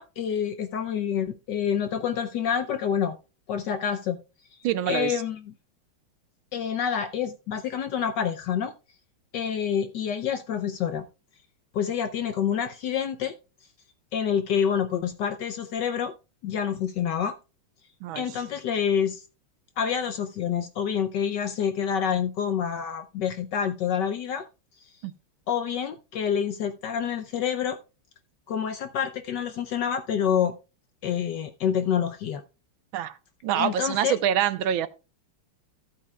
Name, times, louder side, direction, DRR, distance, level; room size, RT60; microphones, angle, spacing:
voice 1, 0.0-3.2 3.5-4.2 4.9-5.5 6.5-8.7 9.3-11.1 11.7-13.3 14.1-16.1 16.4-17.3 18.1-19.2 19.8-24.5 25.5-27.8 28.5-30.5 31.0-32.4 33.5-34.2, left 8 dB, 70° left, 1.1 m, -27 dB
voice 2, 4.6-5.2 18.0-18.3 25.0-25.1 32.9-33.2 33.4-34.9, right 10 dB, 75° right, 1.4 m, -26 dB
14.5 x 8.3 x 2.3 m
omnidirectional pair, 2.4 m